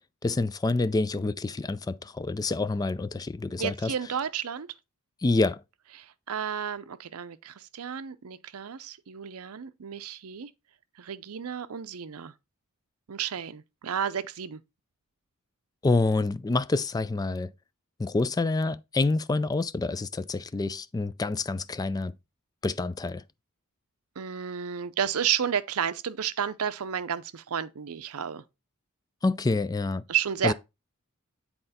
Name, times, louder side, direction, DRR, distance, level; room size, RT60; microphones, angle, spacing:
voice 1, 0.2-3.9 5.2-5.6 15.8-17.5 18.0-22.1 22.6-23.2 29.2-30.0 30.4-30.5, left 3 dB, 15° left, 0.3 m, -27 dB
voice 2, 3.6-4.7 6.0-10.5 11.0-12.3 13.1-14.6 24.2-28.4 30.1-30.5, right 8 dB, 70° right, 0.6 m, -32 dB
7.8 x 4.3 x 4.1 m
head